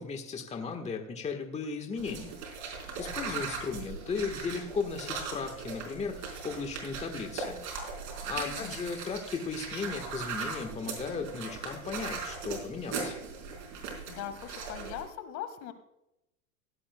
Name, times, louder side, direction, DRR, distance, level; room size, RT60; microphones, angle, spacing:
voice 1, 0.0-2.3 3.0-7.6 8.2-13.1, left 5 dB, 15° left, 4 dB, 1.4 m, -36 dB
sound 1, 2.0-15.0, right 5 dB, 45° right, 4.5 m, -39 dB
voice 2, 3.1-3.4 8.4-8.8 14.1-15.7, left 9 dB, 45° left, 10 dB, 1.7 m, -41 dB
17.0 x 11.5 x 2.2 m, 0.87 s
supercardioid pair, 130°, 41 cm